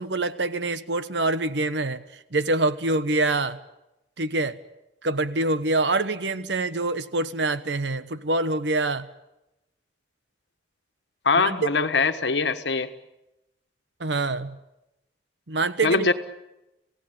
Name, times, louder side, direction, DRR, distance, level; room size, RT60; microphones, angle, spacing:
voice 1, 0.0-2.0 2.3-3.6 4.2-4.6 5.0-9.1 11.3-11.7 14.0-14.6 15.5-16.1, right 2 dB, 80° right, 13 dB, 1.2 m, -25 dB
voice 2, 11.2-12.9 15.8-16.1, left 4 dB, 75° left, 8 dB, 1.4 m, -22 dB
27.0 x 17.0 x 9.9 m, 0.93 s
head